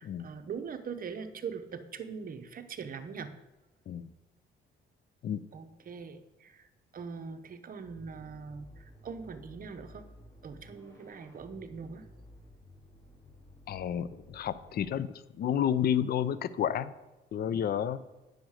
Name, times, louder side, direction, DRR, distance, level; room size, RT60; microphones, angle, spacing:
voice 1, 0.0-3.3 5.5-6.7 6.9-10.1 10.4-12.1, right 6 dB, 45° right, 8 dB, 0.8 m, -42 dB
sound 1, 7.8-14.9, equal, 15° left, 2.3 m, -54 dB
voice 2, 13.7-15.1 15.4-16.9 17.3-18.0, left 9 dB, 50° left, 16 dB, 0.5 m, -30 dB
8.9 x 6.5 x 4.8 m, 1.1 s
cardioid pair, 90°, 20 cm